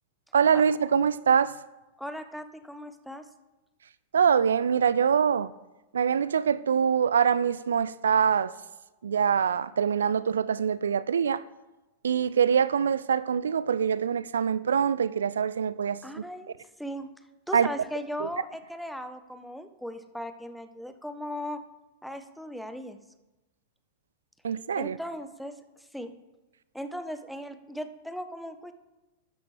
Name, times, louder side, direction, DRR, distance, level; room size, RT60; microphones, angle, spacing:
voice 1, 0.3-1.5 4.1-5.5 5.9-8.5 9.0-11.4 12.0-16.2 17.5-17.7 18.2-18.3 24.4-25.0, right 7 dB, 75° right, 0.3 m, -24 dB
voice 2, 2.0-3.3 16.0-17.1 17.5-21.6 22.0-23.0 24.8-26.1 26.7-28.7, equal, ahead, 1.0 m, -38 dB
13.0 x 9.8 x 3.4 m
figure-of-eight pair, 95°, 0 cm